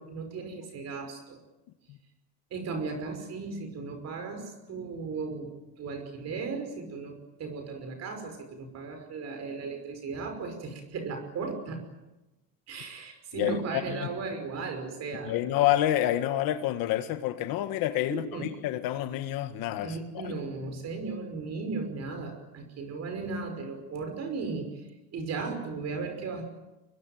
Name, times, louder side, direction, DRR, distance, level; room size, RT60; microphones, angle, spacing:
voice 1, 0.0-1.4 2.5-11.8 12.7-15.4 18.1-18.5 19.8-24.8 25.1-26.4, right 4 dB, 45° right, 5.5 m, -36 dB
voice 2, 15.3-20.3, left 13 dB, 70° left, 1.8 m, -28 dB
24.0 x 22.0 x 9.3 m
cardioid pair, 140°, 36 cm